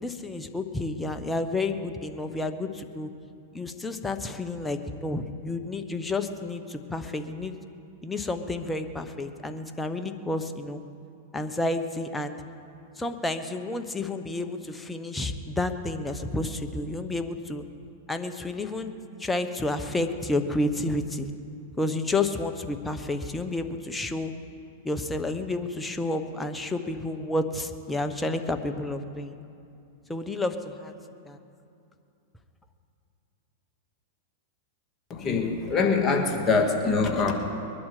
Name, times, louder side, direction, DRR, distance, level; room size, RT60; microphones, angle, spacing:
voice 1, 0.0-3.1 3.5-7.5 8.0-10.8 11.3-12.4 13.0-17.6 18.1-18.9 19.2-21.3 21.8-24.3 24.8-29.3 30.1-30.9 31.3-31.4, left 2 dB, 10° left, 7 dB, 1.0 m, -30 dB
voice 2, 35.1-37.3, left 4 dB, 25° left, 1 dB, 2.1 m, -24 dB
22.0 x 11.5 x 5.0 m, 2.6 s
hypercardioid pair, 120°, 0 cm